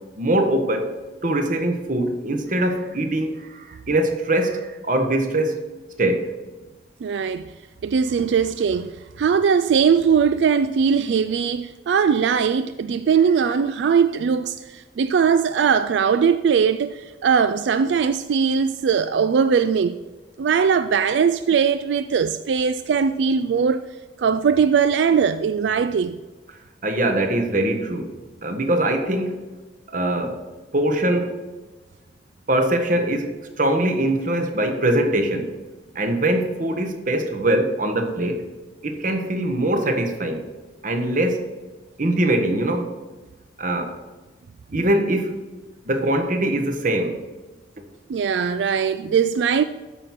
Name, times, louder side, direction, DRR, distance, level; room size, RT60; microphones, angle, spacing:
voice 1, 0.2-0.9 1.2-5.6 6.0-6.3 26.8-28.1 28.4-29.4 29.9-30.4 30.7-31.4 32.5-35.5 35.9-38.5 38.8-40.4 40.8-41.5 42.0-42.9 43.6-43.9 44.7-45.4 45.8-47.2, right 1 dB, 50° right, 1.2 m, -22 dB
voice 2, 7.0-7.5 7.8-20.0 20.4-23.8 24.2-26.2 48.1-49.6, right 6 dB, 85° right, 0.3 m, -20 dB
13.0 x 4.6 x 5.8 m
head